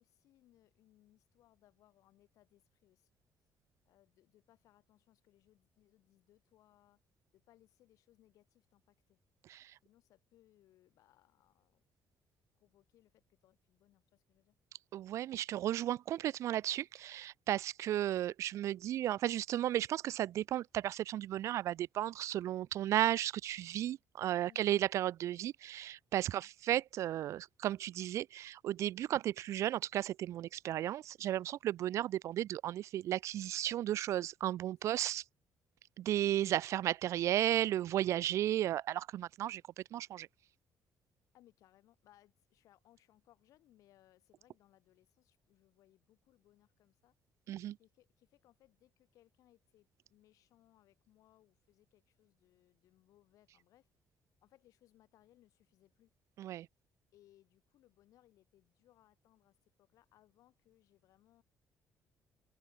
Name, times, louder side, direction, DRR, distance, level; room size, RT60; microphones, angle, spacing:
voice 1, 0.0-3.1 3.8-7.0 7.3-9.2 9.8-11.8 12.6-14.6 24.4-24.6 26.2-26.5 41.3-47.1 47.8-53.9 54.4-56.1 57.1-61.4, left 14 dB, 75° left, 5.8 m, -68 dB
voice 2, 14.9-35.2 36.0-39.6 39.9-40.3 47.5-47.8 56.4-56.7, right 12 dB, 60° right, 0.5 m, -34 dB
open air
cardioid pair, 170°, 6 cm